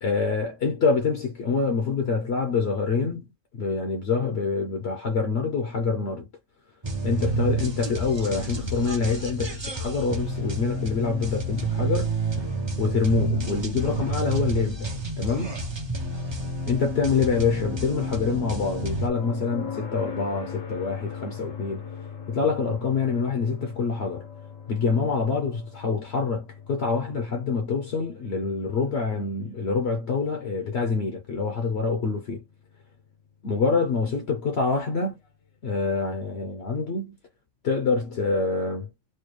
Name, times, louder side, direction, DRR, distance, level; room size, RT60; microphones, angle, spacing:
voice 1, 0.0-6.3 7.0-12.2 12.8-15.6 16.7-21.9 22.3-24.3 24.7-32.4 33.4-35.2 35.6-37.1 37.6-38.9, left 4 dB, 60° left, 0.9 m, -26 dB
sound 1, 6.8-19.1, right 2 dB, 30° right, 0.6 m, -29 dB
sound 2, 19.2-33.0 35.2-35.3, left 6 dB, 75° left, 1.3 m, -41 dB
4.4 x 2.3 x 3.1 m
omnidirectional pair, 1.4 m